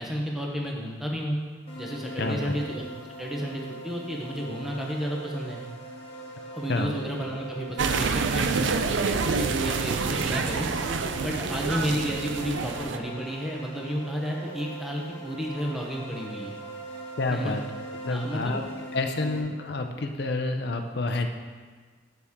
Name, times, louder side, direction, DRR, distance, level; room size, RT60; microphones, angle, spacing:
voice 1, 0.0-1.4 1.8-2.8 3.2-5.6 6.5-8.7 9.1-10.7 11.2-16.6 17.3-17.6 18.1-18.6 19.3-19.4, equal, ahead, -2 dB, 0.9 m, -32 dB
sound 1, 1.7-19.4, right 2 dB, 30° left, 1.2 m, -40 dB
voice 2, 2.2-2.5 6.7-7.0 17.2-17.6 18.0-18.6 18.9-21.3, left 2 dB, 55° left, 5 dB, 0.5 m, -28 dB
sound 2, 7.8-13.0, right 4 dB, 75° right, 0.5 m, -27 dB
8.0 x 6.9 x 3.6 m, 1.5 s
head